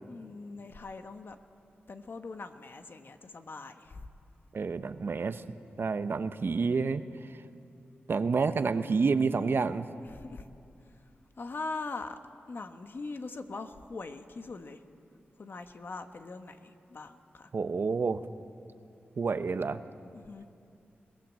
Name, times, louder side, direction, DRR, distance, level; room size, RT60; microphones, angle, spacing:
voice 1, 0.1-1.4 1.9-4.1 10.0-10.4 11.4-12.2 12.5-14.8 15.4-17.5 20.1-20.5, left 3 dB, 55° left, 7 dB, 1.3 m, -41 dB
voice 2, 4.5-5.4 5.8-7.4 8.1-9.8 17.5-18.2 19.2-19.8, right 4 dB, 60° right, 11 dB, 0.9 m, -29 dB
22.0 x 19.0 x 7.5 m, 2.5 s
cardioid pair, 60°, 4 cm